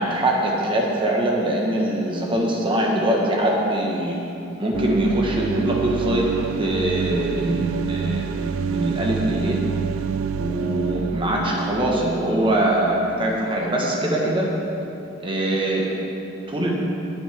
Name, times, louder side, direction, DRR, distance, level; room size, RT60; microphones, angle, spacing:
voice 1, 0.0-4.2 4.6-6.3 6.6-9.6 10.4-14.5 15.2-15.9 16.5-16.7, right 1 dB, 25° right, -2 dB, 1.4 m, -23 dB
sound 1, 4.7-13.6, right 7 dB, 80° right, 0.3 m, -28 dB
20.0 x 6.6 x 3.6 m, 2.9 s
head